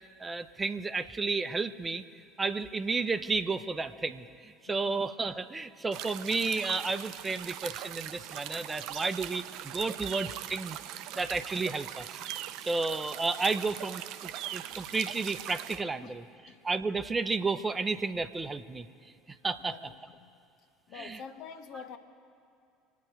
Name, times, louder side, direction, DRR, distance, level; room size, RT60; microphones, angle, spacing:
voice 1, 0.2-2.0 2.4-10.8 11.1-12.1 12.3-16.2 16.6-18.9 19.4-19.7 20.9-21.2, right 3 dB, 20° right, 10 dB, 0.8 m, -32 dB
voice 2, 4.7-5.0 16.0-16.2 16.5-16.7 19.6-20.3 20.9-22.0, left 6 dB, 55° left, 8 dB, 1.0 m, -47 dB
sound 1, 5.9-15.8, right 12 dB, 55° right, 0.6 m, -41 dB
25.5 x 9.4 x 4.9 m, 2.5 s
figure-of-eight pair, 65°, 0 cm